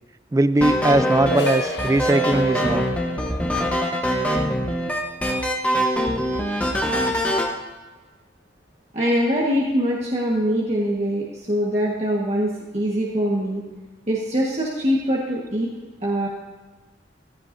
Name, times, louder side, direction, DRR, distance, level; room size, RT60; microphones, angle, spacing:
voice 1, 0.3-2.9 4.9-5.0, right 2 dB, 15° right, 14 dB, 0.3 m, -20 dB
sound 1, 0.6-7.5, equal, 10° left, 1.1 m, -23 dB
sound 2, 1.3-6.8, left 1 dB, 60° left, 1.6 m, -34 dB
voice 2, 8.9-13.6 14.1-15.7 16.0-16.3, equal, 35° right, -4 dB, 1.5 m, -23 dB
15.0 x 14.5 x 2.7 m, 1.3 s
head